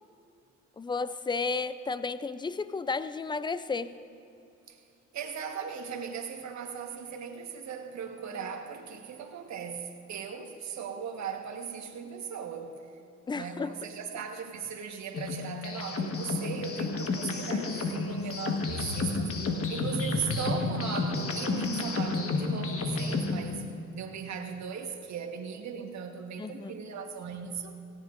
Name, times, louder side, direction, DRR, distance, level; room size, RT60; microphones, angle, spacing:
voice 1, 0.8-4.0 13.3-13.8 26.4-26.8, left 4 dB, 15° left, 0.4 m, -33 dB
voice 2, 5.1-12.8 13.3-19.3 19.7-27.8, right 6 dB, 65° right, 1.4 m, -38 dB
sound 1, 15.1-23.4, left 3 dB, 50° left, 1.5 m, -31 dB
17.5 x 17.0 x 2.6 m
cardioid pair, 90°, 30 cm